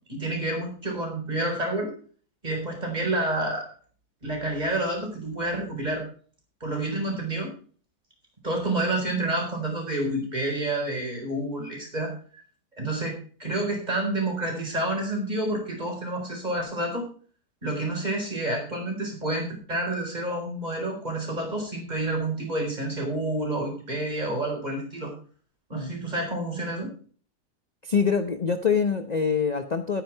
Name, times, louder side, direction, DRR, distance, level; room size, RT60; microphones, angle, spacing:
voice 1, 0.1-1.9 2.4-3.7 4.2-6.0 6.6-7.5 8.4-12.4 12.8-17.0 17.6-25.1 25.7-26.9, right 1 dB, 25° right, 1 dB, 4.5 m, -29 dB
voice 2, 27.8-30.0, left 6 dB, 40° left, 8 dB, 0.6 m, -25 dB
12.5 x 9.4 x 4.5 m, 0.43 s
omnidirectional pair, 1.8 m